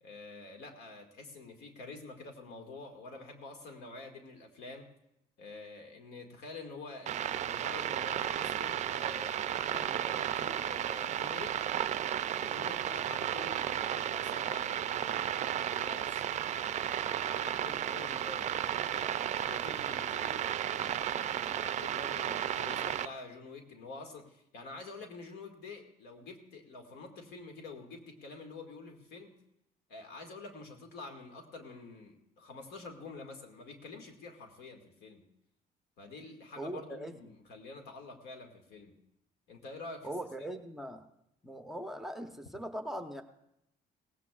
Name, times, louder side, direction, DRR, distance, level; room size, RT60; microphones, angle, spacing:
voice 1, 0.0-4.9 5.4-11.5 12.4-15.3 15.7-16.1 16.9-29.4 29.9-35.3 36.0-39.0 39.5-40.1, left 3 dB, 80° left, 4 dB, 2.0 m, -48 dB
sound 1, 7.1-23.1, right 10 dB, 45° right, 0.4 m, -33 dB
voice 2, 36.6-37.1 40.0-41.1 41.4-43.2, right 1 dB, ahead, 5 dB, 0.9 m, -40 dB
18.0 x 16.0 x 2.4 m, 0.80 s
cardioid pair, 110°, 17 cm